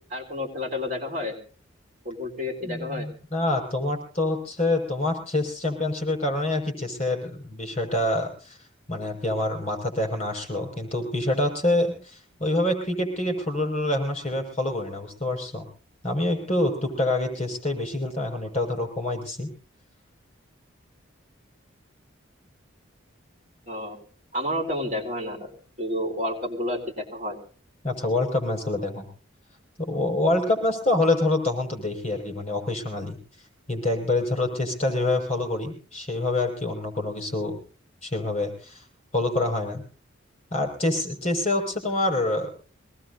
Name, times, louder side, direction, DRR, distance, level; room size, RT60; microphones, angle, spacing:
voice 1, 0.1-1.4 2.0-3.1 23.7-24.0 24.3-25.5 25.8-27.4, left 1 dB, 40° right, 0 dB, 3.9 m, -30 dB
voice 2, 2.6-8.6 8.9-15.7 16.0-19.5 27.8-29.1 29.8-33.2 33.7-37.6 38.0-38.9 39.1-39.8 40.5-42.5, left 2 dB, 30° left, 2 dB, 5.5 m, -26 dB
25.0 x 19.0 x 2.7 m, 0.41 s
head